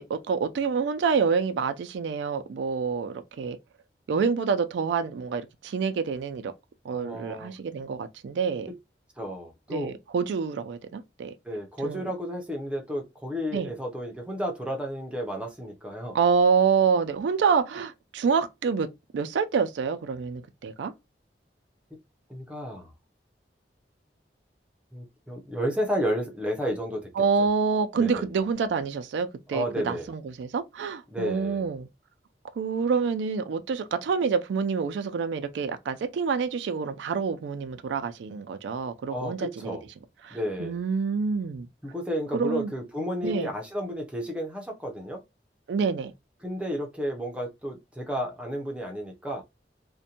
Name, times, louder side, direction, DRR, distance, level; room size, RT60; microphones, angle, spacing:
voice 1, 0.0-3.6 4.1-6.5 6.9-8.7 9.7-11.3 11.8-12.1 13.5-13.7 16.1-18.9 19.1-20.9 27.2-31.9 32.6-39.8 40.2-41.7 42.3-42.7 43.2-43.5 45.7-46.1, right 5 dB, 90° right, 0.3 m, -27 dB
voice 2, 6.9-7.5 8.7-8.8 9.2-9.9 11.4-16.2 22.3-22.9 24.9-27.2 27.9-28.3 29.5-30.1 31.1-31.6 39.1-39.8 40.3-40.8 41.8-45.2 46.4-49.4, equal, 5° right, 0.5 m, -32 dB
2.5 x 2.1 x 2.7 m
head